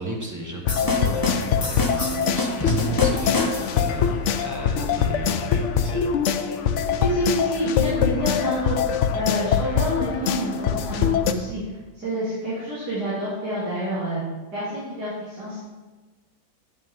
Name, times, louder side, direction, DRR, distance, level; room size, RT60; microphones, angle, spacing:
voice 1, 0.0-4.1 4.4-6.1, right 1 dB, 10° right, -1 dB, 1.4 m, -35 dB
sound 1, 0.7-11.3, left 7 dB, 65° left, 0.8 m, -23 dB
sound 2, 0.7-3.9, left 1 dB, 25° left, 0.4 m, -27 dB
voice 2, 6.9-8.8 9.1-11.6 11.9-14.2 14.5-15.6, equal, 85° right, -10 dB, 3.6 m, -28 dB
10.0 x 9.1 x 3.7 m, 1.2 s
omnidirectional pair, 1.7 m